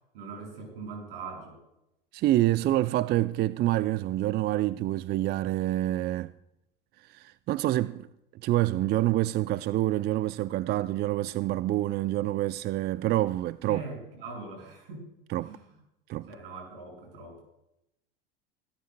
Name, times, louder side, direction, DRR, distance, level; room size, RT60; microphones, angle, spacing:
voice 1, 0.1-1.6 13.7-15.1 15.4-15.8 16.3-17.4, right 4 dB, 75° right, 6.1 m, -41 dB
voice 2, 2.1-6.3 7.1-8.1 8.4-13.8 15.3-15.5 16.1-16.3, right 15 dB, 35° right, 0.4 m, -27 dB
24.5 x 13.0 x 2.2 m
hypercardioid pair, 80°, 29 cm